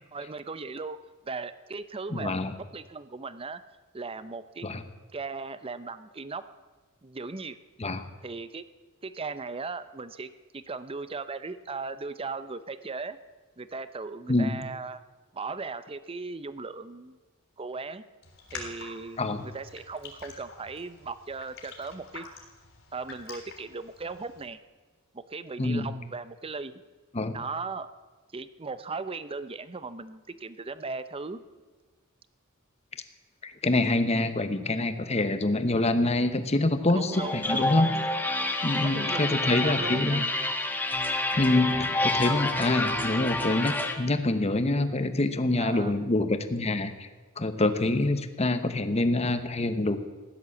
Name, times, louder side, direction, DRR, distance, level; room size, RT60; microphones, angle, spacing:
voice 1, 0.1-1.0 1.2-2.4 2.7-3.6 3.9-4.7 5.1-6.4 7.0-7.6 8.2-8.6 9.0-13.2 13.6-15.0 15.3-17.2 17.6-18.0 18.5-22.3 22.9-24.6 25.1-26.7 27.3-27.9 28.3-31.4 36.9-37.8 38.8-40.3 45.6-46.0, right 4 dB, 25° right, 13 dB, 0.6 m, -37 dB
voice 2, 2.1-2.5 4.6-4.8 7.8-8.0 14.3-14.5 19.2-19.4 25.6-25.9 27.1-27.3 33.4-37.9 38.6-40.2 41.4-47.1 47.4-50.0, left 2 dB, 30° left, 10 dB, 1.0 m, -26 dB
Raindrop, 18.2-24.5, left 4 dB, 60° left, 3.4 m, -46 dB
sound 1, 37.1-43.9, left 2 dB, 10° left, 1.3 m, -28 dB
16.0 x 11.0 x 7.2 m, 1.3 s
head